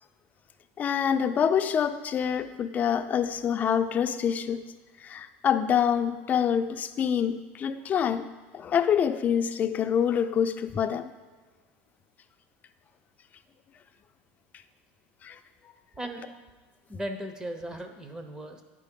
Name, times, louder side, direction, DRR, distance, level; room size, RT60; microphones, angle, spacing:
voice 1, 0.8-4.6 5.0-8.3 8.5-11.1 15.2-15.4, left 8 dB, 30° left, 9 dB, 0.4 m, -26 dB
voice 2, 16.0-16.4 16.9-18.6, right 1 dB, 10° right, 5 dB, 0.6 m, -37 dB
9.7 x 4.1 x 3.6 m, 1.3 s
supercardioid pair, 135°, 6 cm